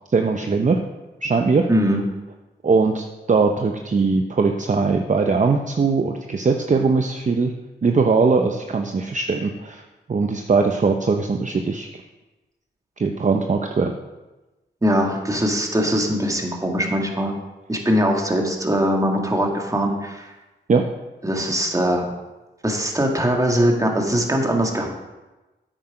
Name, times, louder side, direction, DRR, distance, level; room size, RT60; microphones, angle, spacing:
voice 1, 0.1-0.8 1.2-1.7 2.6-7.5 7.8-9.8 10.1-11.9 13.0-13.9 20.7-20.9, right 4 dB, 40° right, 4 dB, 0.7 m, -20 dB
voice 2, 1.7-2.0 14.8-17.3 17.7-20.3 21.2-22.1 22.6-24.9, equal, 15° right, 1 dB, 1.9 m, -21 dB
8.6 x 7.7 x 4.9 m, 1.1 s
cardioid pair, 60°, 19 cm